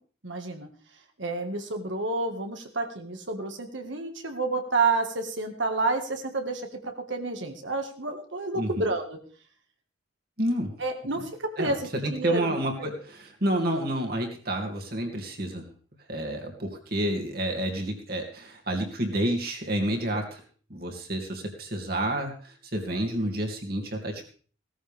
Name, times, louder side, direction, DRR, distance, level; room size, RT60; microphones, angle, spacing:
voice 1, 0.2-0.7 1.2-9.2 10.8-12.5, right 3 dB, 75° right, 5 dB, 2.0 m, -29 dB
voice 2, 8.5-8.9 10.4-10.7 11.6-11.8 12.0-15.6 16.1-20.4 20.7-24.3, right 1 dB, 50° right, 2 dB, 2.8 m, -29 dB
17.5 x 14.0 x 3.6 m, 0.43 s
head